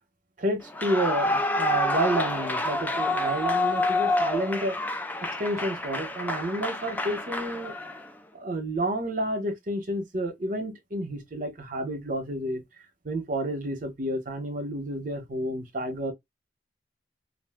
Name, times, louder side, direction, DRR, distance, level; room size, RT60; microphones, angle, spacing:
voice 1, 0.4-4.8 5.4-7.7 8.3-12.6 13.0-16.1, right 1 dB, 50° right, 0.9 m, -30 dB
Clapping / Cheering / Applause, 0.7-8.1, left 2 dB, 10° left, 0.4 m, -28 dB
2.5 x 2.2 x 3.5 m
head